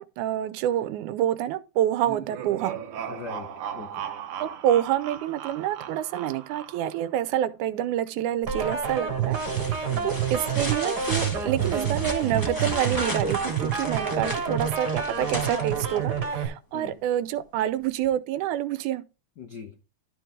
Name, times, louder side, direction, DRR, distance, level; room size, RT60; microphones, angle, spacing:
voice 1, 0.0-2.8 4.4-19.0, right 11 dB, 85° right, 2.1 m, -27 dB
sound 1, 2.0-7.1, right 9 dB, 65° right, 1.5 m, -37 dB
voice 2, 3.1-4.0 9.9-10.2 14.5-14.6 16.7-17.0 19.4-19.7, left 5 dB, 75° left, 0.9 m, -41 dB
sound 2, 8.5-8.8 9.3-16.3 18.0-18.1, equal, 10° left, 1.7 m, -35 dB
sound 3, 8.5-16.5, right 6 dB, 35° right, 2.2 m, -28 dB
12.0 x 4.7 x 3.7 m
omnidirectional pair, 3.4 m